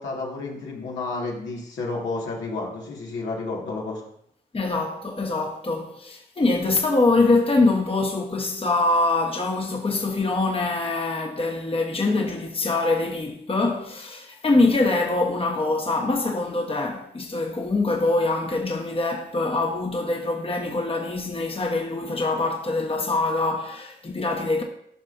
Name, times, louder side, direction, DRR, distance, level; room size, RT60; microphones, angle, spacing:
voice 1, 0.0-4.0, left 3 dB, 80° left, 1.9 m, -31 dB
voice 2, 4.5-24.6, left 2 dB, 30° left, 1.2 m, -24 dB
13.0 x 5.4 x 2.7 m
supercardioid pair, 50°, 19 cm